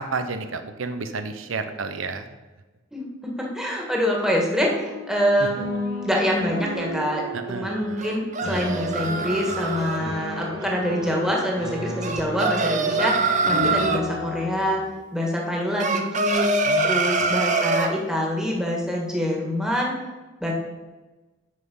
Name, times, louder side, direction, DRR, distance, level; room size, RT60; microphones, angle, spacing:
voice 1, 0.0-2.3 5.4-5.5 7.3-8.0 13.7-14.0 16.6-16.9 17.2-17.4, right 4 dB, 85° right, 9 dB, 0.7 m, -31 dB
voice 2, 2.9-7.2 7.5-14.8 15.1-16.5 16.8-19.9 20.4-20.5, equal, 5° right, -1 dB, 1.8 m, -25 dB
sound 1, 4.8-14.9, left 1 dB, 70° right, 2.8 m, -33 dB
sound 2, 8.0-10.0 12.0-14.0 15.8-17.9, right 3 dB, 40° right, 0.8 m, -24 dB
9.6 x 5.8 x 5.5 m, 1.2 s
head